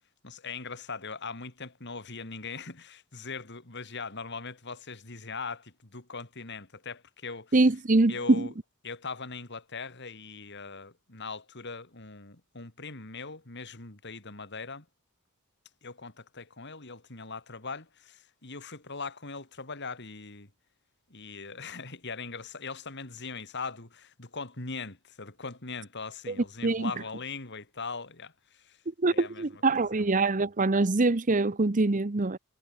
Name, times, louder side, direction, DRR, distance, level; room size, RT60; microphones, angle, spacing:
voice 1, 0.2-7.5 8.1-8.5 8.8-14.8 15.8-20.5 21.1-28.8 29.1-29.4 29.7-30.1, left 4 dB, 55° left, 3.1 m, -40 dB
voice 2, 7.5-8.5 26.3-26.4 26.6-26.9 29.0-32.4, right 2 dB, 35° right, 0.9 m, -24 dB
head